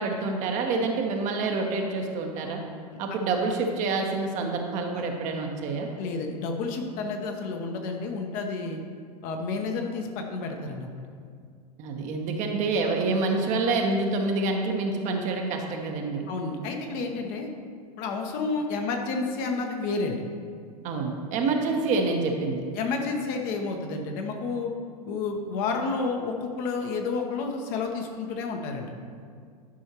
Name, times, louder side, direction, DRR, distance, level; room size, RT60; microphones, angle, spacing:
voice 1, 0.0-2.6 3.0-5.9 11.8-16.3 20.8-22.6, right 3 dB, 35° right, 2 dB, 1.0 m, -27 dB
voice 2, 6.0-8.8 9.2-10.9 16.3-17.5 18.0-20.2 22.7-24.7 25.1-28.9, left 4 dB, 40° left, 3 dB, 1.0 m, -30 dB
11.0 x 5.5 x 3.0 m, 2.1 s
figure-of-eight pair, 95°, 20 cm